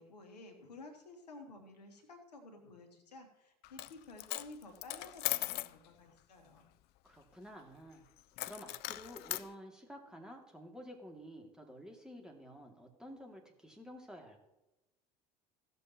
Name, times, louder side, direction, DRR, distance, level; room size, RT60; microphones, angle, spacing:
voice 1, 0.0-6.7, left 2 dB, 85° left, 5 dB, 1.4 m, -53 dB
Coin (dropping), 3.6-5.7 8.4-9.5, left 17 dB, 55° left, 0.4 m, -38 dB
voice 2, 7.0-8.0 8.4-14.4, equal, 5° right, 1 dB, 2.4 m, -51 dB
16.5 x 6.9 x 3.0 m, 0.97 s
hypercardioid pair, 70°, 20 cm